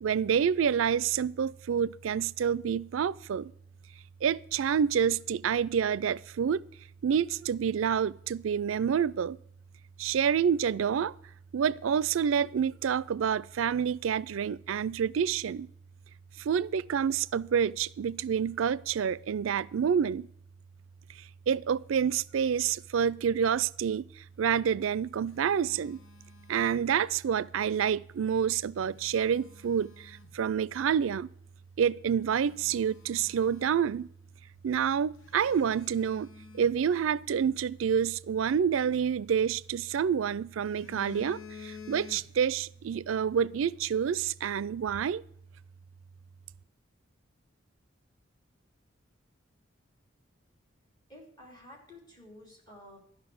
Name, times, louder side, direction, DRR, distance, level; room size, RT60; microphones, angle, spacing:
voice 1, 0.0-3.5 4.2-6.7 7.0-9.4 10.0-11.1 11.5-15.7 16.4-20.3 21.5-24.1 24.4-26.0 26.5-31.3 31.8-34.1 34.6-36.3 36.5-45.2, right 7 dB, 80° right, 0.4 m, -28 dB
Telephone, 24.7-27.3 28.5-30.4 31.1-31.2 31.8-31.9 32.2-34.3 34.5-34.7 35.2-37.6 39.1-40.1 40.5-42.6 42.9-43.1, left 6 dB, 80° left, 1.2 m, -51 dB
voice 2, 51.1-53.0, left 1 dB, 20° left, 3.0 m, -51 dB
12.5 x 5.7 x 7.7 m
head